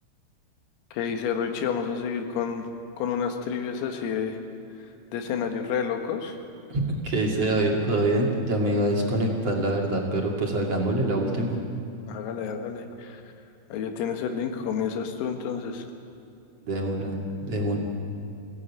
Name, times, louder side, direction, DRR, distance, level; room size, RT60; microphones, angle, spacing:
voice 1, 0.9-2.7 3.0-4.4 5.1-6.4 12.1-13.2 13.7-15.8, left 7 dB, 90° left, 4 dB, 4.4 m, -29 dB
voice 2, 6.7-11.6 16.7-17.2 17.5-17.8, right 1 dB, 40° right, -1 dB, 2.5 m, -25 dB
23.0 x 16.5 x 8.4 m, 2.7 s
omnidirectional pair, 5.9 m